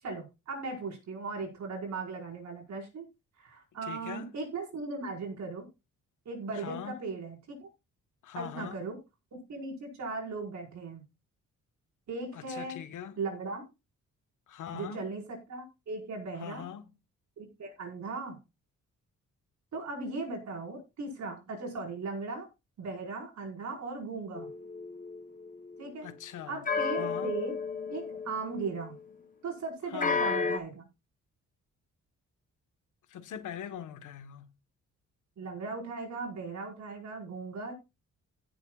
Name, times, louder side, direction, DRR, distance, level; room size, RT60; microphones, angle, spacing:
voice 1, 0.0-3.1 3.4-5.7 6.2-7.7 8.3-9.0 9.5-11.0 12.1-12.8 13.2-13.6 14.7-16.7 17.4-18.4 19.7-22.5 22.8-24.5 25.8-26.1 26.5-27.6 27.9-29.0 29.4-30.8 35.4-37.7, right 3 dB, 65° right, 5.1 m, -38 dB
voice 2, 3.8-4.3 6.5-7.0 8.2-8.8 12.3-13.1 14.5-15.1 16.4-16.9 26.0-26.6 27.0-27.3 29.9-30.2 33.1-34.5, left 9 dB, 80° left, 1.3 m, -42 dB
sound 1, 24.3-25.8 26.7-29.1 30.0-30.6, left 5 dB, 25° left, 0.9 m, -33 dB
16.5 x 7.8 x 2.4 m
cardioid pair, 135°, 30 cm